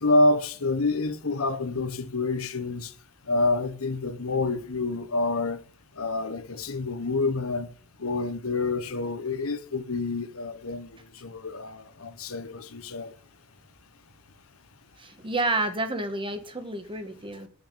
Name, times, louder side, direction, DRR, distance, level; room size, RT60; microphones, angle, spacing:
voice 1, 0.0-2.9 3.3-5.6 6.0-7.7 8.0-13.1, left 2 dB, 90° left, 1.2 m, -27 dB
voice 2, 15.0-17.5, right 2 dB, 25° right, 1.5 m, -30 dB
9.8 x 6.2 x 8.6 m
head